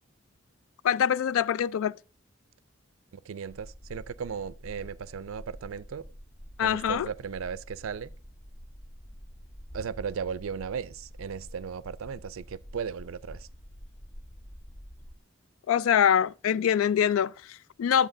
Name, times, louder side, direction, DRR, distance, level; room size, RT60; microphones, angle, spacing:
voice 1, 0.8-2.0 6.6-7.1 15.7-18.1, left 8 dB, 85° left, 0.3 m, -24 dB
voice 2, 3.1-6.1 6.6-8.1 9.7-13.5, right 6 dB, 85° right, 0.4 m, -36 dB
sound 1, 3.5-15.2, equal, 20° left, 0.5 m, -47 dB
11.0 x 8.0 x 2.6 m
head